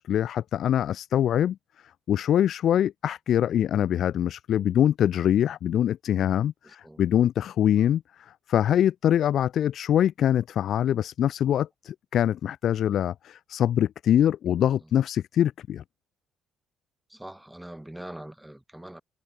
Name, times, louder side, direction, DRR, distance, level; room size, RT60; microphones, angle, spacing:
voice 1, 0.0-1.6 2.1-15.8, left 10 dB, 60° left, 0.8 m, -24 dB
voice 2, 6.6-7.0 14.6-14.9 17.1-19.0, right 1 dB, 5° right, 3.7 m, -43 dB
cardioid pair, 120°, 0 cm